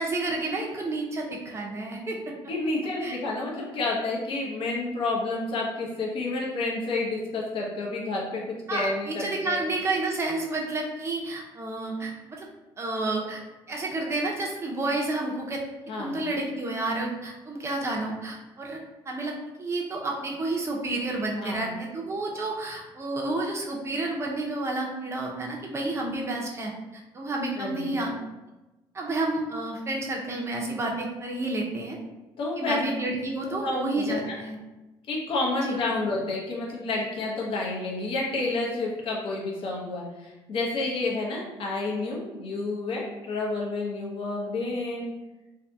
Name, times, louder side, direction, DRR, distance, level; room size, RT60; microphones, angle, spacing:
voice 1, 0.0-2.3 3.0-3.2 8.7-12.5 12.8-13.4 13.7-15.6 16.0-18.8 19.1-19.3 19.6-26.7 27.1-28.1 28.9-32.0 32.6-34.6 35.6-35.8, right 2 dB, 25° right, -1 dB, 0.5 m, -30 dB
voice 2, 2.5-8.4 8.7-9.6 15.9-16.2 21.4-21.7 27.6-27.9 32.4-32.8 33.6-34.4 35.1-45.1, left 2 dB, 55° left, -2 dB, 0.7 m, -30 dB
2.6 x 2.5 x 2.2 m, 1.1 s
cardioid pair, 105°, 11 cm